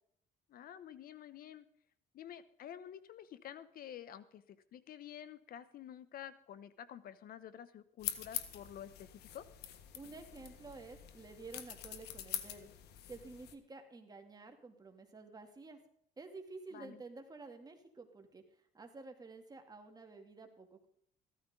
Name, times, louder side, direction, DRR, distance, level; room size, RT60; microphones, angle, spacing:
voice 1, 0.5-1.7 2.1-9.4 16.7-17.0, left 10 dB, 60° left, 15 dB, 1.0 m, -50 dB
sound 1, 8.0-13.5, left 11 dB, 75° left, 1.6 m, -45 dB
voice 2, 9.9-12.7 13.1-15.8 16.2-18.4 18.7-20.9, right 3 dB, 25° right, 4 dB, 2.7 m, -51 dB
15.0 x 13.5 x 3.8 m, 0.68 s
cardioid pair, 110°, 17 cm